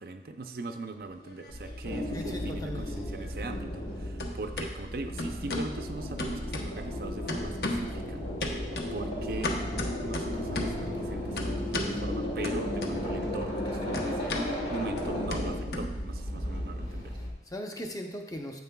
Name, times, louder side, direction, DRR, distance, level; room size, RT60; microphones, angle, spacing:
voice 1, 0.0-8.3 8.9-9.6 10.0-17.2, right 3 dB, 55° right, 6 dB, 0.5 m, -40 dB
sound 1, 1.1-2.0 2.3-3.9 4.2-4.7 5.2-5.7 6.2-7.0 7.3-8.0 8.4-10.8 11.4-12.0 12.4-13.3 13.5-16.4, left 1 dB, 60° left, 0.8 m, -36 dB
sound 2, 1.5-17.3, left 1 dB, 85° left, 1.4 m, -34 dB
voice 2, 2.1-2.8 17.1-18.6, equal, 20° left, 2 dB, 0.6 m, -38 dB
9.3 x 7.7 x 2.3 m, 1.0 s
head